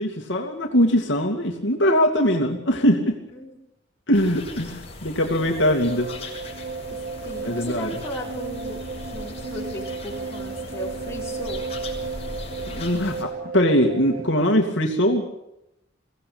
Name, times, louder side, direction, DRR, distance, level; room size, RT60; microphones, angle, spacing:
voice 1, 0.0-3.2 4.1-6.1 7.4-7.9 12.7-15.3, equal, 65° left, 2 dB, 2.5 m, -21 dB
sound 1, 4.1-13.2, left 2 dB, 30° left, 6.1 m, -39 dB
sound 2, 5.4-14.3, right 4 dB, 45° right, 0.9 m, -34 dB
voice 2, 6.9-11.7, equal, 15° left, -3 dB, 5.5 m, -36 dB
23.5 x 17.0 x 8.7 m, 0.86 s
head